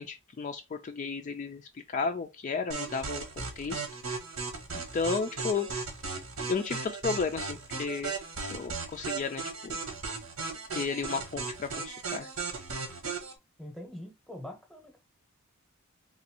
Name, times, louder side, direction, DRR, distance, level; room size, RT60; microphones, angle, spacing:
voice 1, 0.0-3.8 4.9-5.7 6.5-8.1 8.5-9.8 10.7-12.3, left 5 dB, 35° left, 0.3 m, -33 dB
sound 1, 2.7-13.3, right 4 dB, 85° right, 1.2 m, -36 dB
voice 2, 13.6-15.0, left 1 dB, ahead, 0.8 m, -43 dB
3.9 x 2.5 x 2.7 m
head